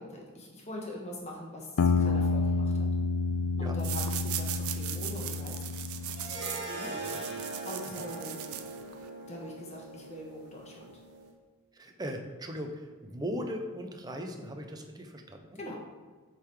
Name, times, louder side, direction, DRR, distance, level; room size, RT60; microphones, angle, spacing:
voice 1, 0.0-2.9 3.6-5.7 6.8-8.6 9.3-10.9 15.5-15.8, left 1 dB, 30° left, -2 dB, 1.4 m, -43 dB
sound 1, 1.8-6.4, left 4 dB, 75° left, 0.4 m, -29 dB
sound 2, 3.8-9.1, right 11 dB, 75° right, 0.6 m, -39 dB
sound 3, 6.2-11.3, right 2 dB, 50° right, 1.3 m, -41 dB
voice 2, 6.9-7.2 7.9-8.1 11.7-15.6, equal, 20° right, 4 dB, 0.6 m, -39 dB
7.5 x 3.9 x 4.8 m, 1.5 s
head